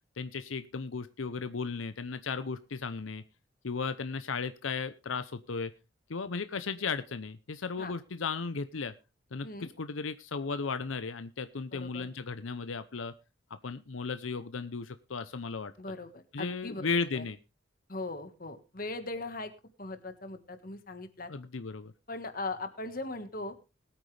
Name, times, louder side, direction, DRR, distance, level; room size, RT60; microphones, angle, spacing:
voice 1, 0.2-3.2 3.6-5.7 6.1-8.9 9.3-13.1 13.5-15.7 16.3-17.4 21.3-21.9, left 4 dB, 85° left, 11 dB, 0.7 m, -35 dB
voice 2, 11.7-12.1 15.8-17.2 17.9-19.5 19.8-21.3 22.1-23.5, left 2 dB, 45° left, 9 dB, 1.5 m, -39 dB
20.5 x 8.9 x 3.3 m, 0.29 s
head